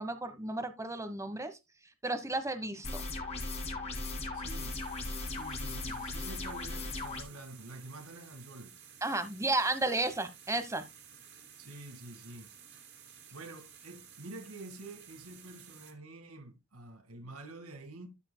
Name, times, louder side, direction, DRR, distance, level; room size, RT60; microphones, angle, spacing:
voice 1, 0.0-1.6 2.0-3.0 9.0-10.8, right 2 dB, 15° right, 1.1 m, -33 dB
sound 1, 2.8-7.2, left 2 dB, 30° left, 2.6 m, -37 dB
voice 2, 4.3-4.8 5.3-8.7 11.6-12.5 13.3-18.1, right 2 dB, 85° right, 1.9 m, -48 dB
sound 2, 4.4-15.9, right 8 dB, 55° right, 2.8 m, -54 dB
13.0 x 7.8 x 2.2 m
head